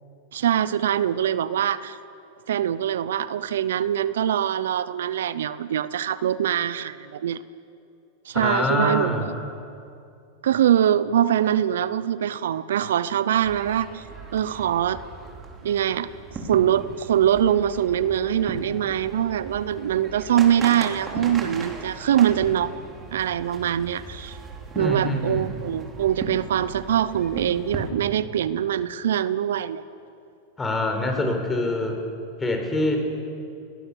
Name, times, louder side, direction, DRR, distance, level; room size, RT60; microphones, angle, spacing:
voice 1, 0.3-2.0 2.5-7.4 8.3-9.1 10.4-14.0 14.3-15.0 15.6-16.1 16.5-22.7 23.1-24.4 24.7-29.8, right 10 dB, 80° right, 16 dB, 0.7 m, -23 dB
voice 2, 8.3-9.3 24.7-25.5 30.6-32.0 32.4-33.0, left 1 dB, 15° left, 4 dB, 4.4 m, -25 dB
sound 1, 13.4-27.9, right 3 dB, 25° right, 3.6 m, -38 dB
22.0 x 18.5 x 6.9 m, 2.5 s
hypercardioid pair, 110°, 0 cm